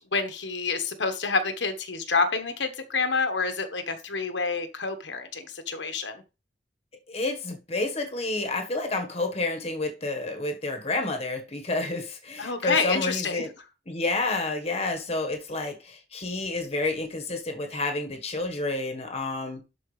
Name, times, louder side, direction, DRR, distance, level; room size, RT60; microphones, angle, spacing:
voice 1, 0.1-6.2 12.4-13.4, left 4 dB, 80° left, 1.3 m, -28 dB
voice 2, 7.1-13.5 13.9-19.6, left 2 dB, 35° left, 1.4 m, -29 dB
11.5 x 4.9 x 3.3 m
head